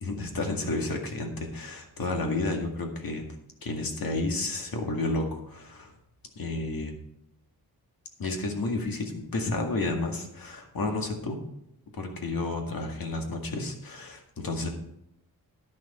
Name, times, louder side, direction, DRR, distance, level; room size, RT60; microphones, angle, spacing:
voice 1, 0.0-3.3 3.6-5.9 6.4-6.9 8.2-11.4 12.0-14.7, left 2 dB, 65° left, 2 dB, 2.0 m, -31 dB
11.0 x 10.5 x 4.3 m, 0.78 s
wide cardioid pair, 155°, 38 cm